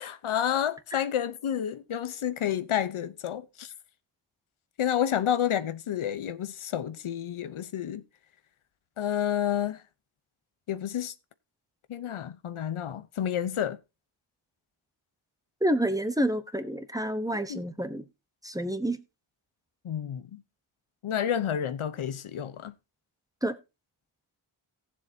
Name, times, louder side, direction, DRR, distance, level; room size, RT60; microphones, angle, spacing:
voice 1, 0.0-3.7 4.8-8.0 9.0-9.8 10.7-11.1 11.9-13.8 17.5-17.6 19.8-20.4 21.0-22.7, left 9 dB, 85° left, 1.0 m, -30 dB
voice 2, 15.6-18.0 18.4-19.0 23.4-23.5, right 1 dB, 5° right, 1.0 m, -28 dB
18.0 x 7.3 x 2.8 m
wide cardioid pair, 130°, 48 cm